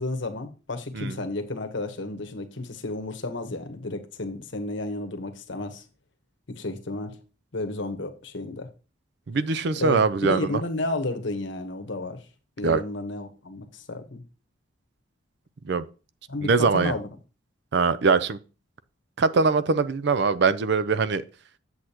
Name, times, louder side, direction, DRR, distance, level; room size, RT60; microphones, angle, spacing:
voice 1, 0.0-5.8 6.5-7.2 7.5-8.7 9.8-12.2 12.6-14.2 16.3-17.1, left 2 dB, 70° left, 1.1 m, -32 dB
voice 2, 9.3-10.6 12.6-12.8 15.6-15.8 16.4-16.9 17.7-18.4 19.2-21.2, right 4 dB, 60° right, 0.5 m, -22 dB
8.2 x 7.7 x 2.9 m
head